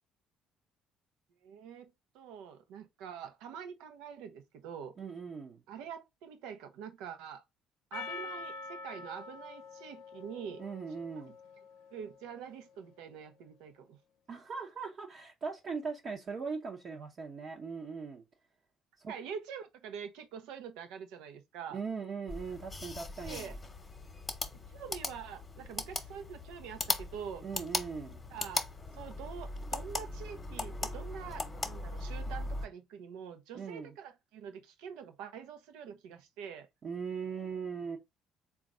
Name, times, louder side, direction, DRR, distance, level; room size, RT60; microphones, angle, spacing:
voice 1, 1.4-4.9 5.7-7.4 7.9-10.6 11.2-11.3 11.9-14.0 19.1-21.8 23.2-23.6 24.7-27.4 28.3-28.7 28.9-36.7, right 7 dB, 75° right, 0.7 m, -45 dB
voice 2, 5.0-5.6 10.6-11.4 14.3-18.2 19.0-19.1 21.7-23.5 27.4-28.3 33.5-33.9 36.8-38.0, right 5 dB, 50° right, 0.8 m, -40 dB
Percussion, 7.9-12.4, left 4 dB, 80° left, 0.6 m, -46 dB
sound 1, 22.3-32.7, left 2 dB, 25° left, 1.0 m, -39 dB
3.8 x 2.4 x 3.8 m
hypercardioid pair, 60°, 0 cm